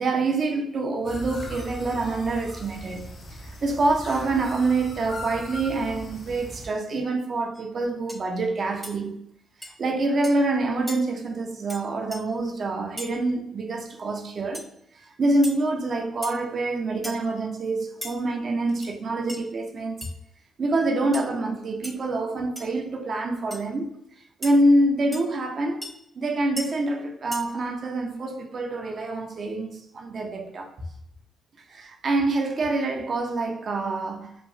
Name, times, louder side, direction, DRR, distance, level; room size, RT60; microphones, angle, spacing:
voice 1, 0.0-3.0 3.6-9.2 9.8-14.7 15.2-20.1 20.6-23.9 24.4-25.9 26.2-30.7 31.7-34.3, right 2 dB, 55° right, 0.5 m, -26 dB
sound 1, 1.0-6.7, equal, 55° left, 0.6 m, -39 dB
sound 2, 7.5-7.7 8.1-8.3 8.8-9.0 9.6-9.7 10.2-10.4 10.9-11.0 11.7-11.8 12.1-12.2 13.0-13.1 14.5-14.7 15.4-15.6 16.2-16.4 17.0-17.3 18.0-18.1 18.7-18.9 19.3-19.4 20.0-20.1 21.1-21.3 21.8-21.9 22.5-22.7 23.5-23.6 24.4-24.5 25.1-25.2 25.8-25.9 26.6-26.7 27.3-27.4, left 1 dB, 5° left, 0.7 m, -37 dB
3.0 x 2.2 x 2.6 m
supercardioid pair, 60°, 0 cm